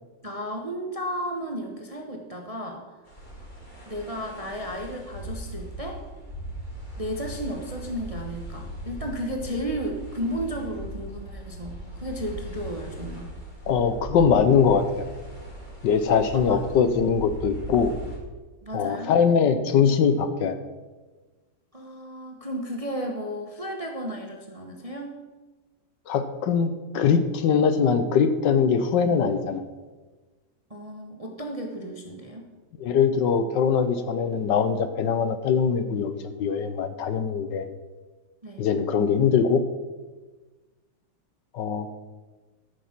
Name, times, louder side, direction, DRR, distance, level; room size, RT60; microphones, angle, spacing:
voice 1, 0.2-2.8 3.9-6.0 7.0-13.3 16.3-16.6 18.6-19.1 21.7-25.1 30.7-32.5 38.4-38.7, equal, 25° right, 2 dB, 0.8 m, -33 dB
sound 1, 3.1-18.2, right 1 dB, 25° left, 2.4 m, -39 dB
voice 2, 13.7-15.0 15.8-17.9 18.7-20.6 26.1-29.6 32.8-37.7 38.6-39.6 41.5-41.9, left 6 dB, 70° left, 10 dB, 1.3 m, -22 dB
13.5 x 6.5 x 5.9 m, 1.2 s
omnidirectional pair, 2.1 m